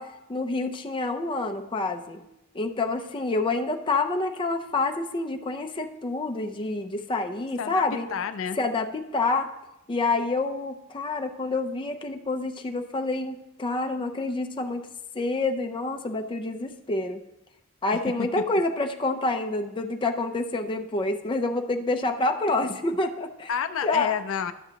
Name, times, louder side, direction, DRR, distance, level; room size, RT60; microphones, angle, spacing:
voice 1, 0.0-2.2 2.5-8.1 8.5-9.5 9.9-14.9 15.1-17.2 17.8-23.5 23.8-24.1, left 3 dB, 25° left, 4 dB, 0.5 m, -28 dB
voice 2, 7.6-8.6 23.5-24.5, left 7 dB, 75° left, 11 dB, 0.4 m, -29 dB
11.5 x 7.0 x 2.8 m, 0.92 s
head